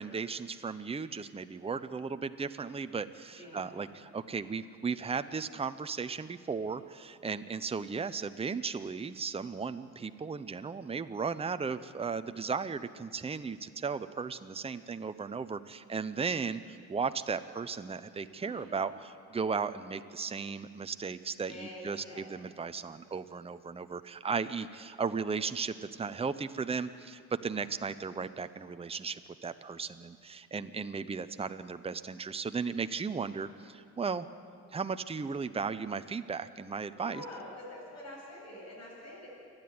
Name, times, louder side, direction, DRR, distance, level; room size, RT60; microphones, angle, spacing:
voice 1, 0.0-34.3 34.7-37.2, right 5 dB, 20° right, 10 dB, 0.7 m, -36 dB
voice 2, 3.3-3.7 7.2-7.6 18.3-18.8 21.5-22.3 27.6-27.9 36.9-39.3, left 1 dB, 60° left, -4 dB, 7.7 m, -47 dB
28.0 x 10.5 x 9.6 m, 2.4 s
cardioid pair, 90°, 30 cm